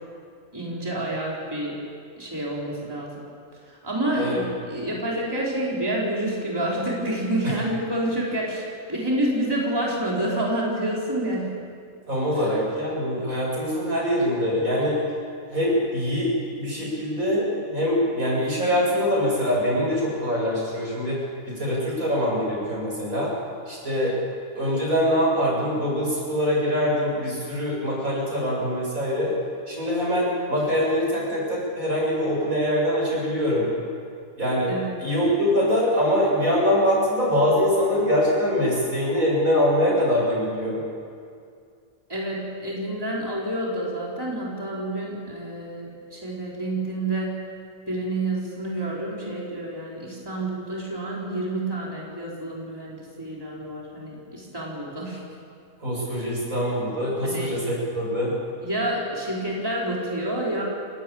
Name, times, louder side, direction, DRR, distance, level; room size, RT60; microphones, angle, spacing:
voice 1, 0.5-1.8 2.2-3.2 3.7-11.6 34.7-34.9 42.1-47.4 47.9-55.2 57.2-57.5 58.6-60.6, right 1 dB, 15° right, -4 dB, 4.1 m, -28 dB
voice 2, 12.1-15.0 15.5-23.3 23.7-24.1 24.5-29.3 29.7-33.7 34.4-34.7 35.0-40.8 55.8-58.4, equal, 80° right, -4 dB, 8.1 m, -23 dB
30.0 x 13.0 x 8.6 m, 2.3 s
omnidirectional pair, 1.4 m